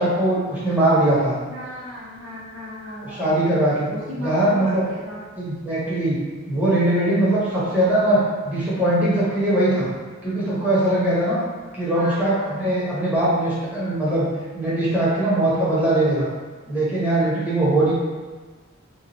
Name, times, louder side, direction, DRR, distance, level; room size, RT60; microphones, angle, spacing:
voice 1, 0.0-1.4 3.0-3.9 4.2-4.9 5.4-6.2 6.5-9.9 10.2-11.4 11.7-14.3 14.5-16.3 16.7-17.9, right 1 dB, 10° right, -10 dB, 1.0 m, -21 dB
voice 2, 1.5-5.2 12.0-12.7, equal, 80° right, -7 dB, 1.1 m, -36 dB
3.0 x 2.3 x 3.9 m, 1.4 s
head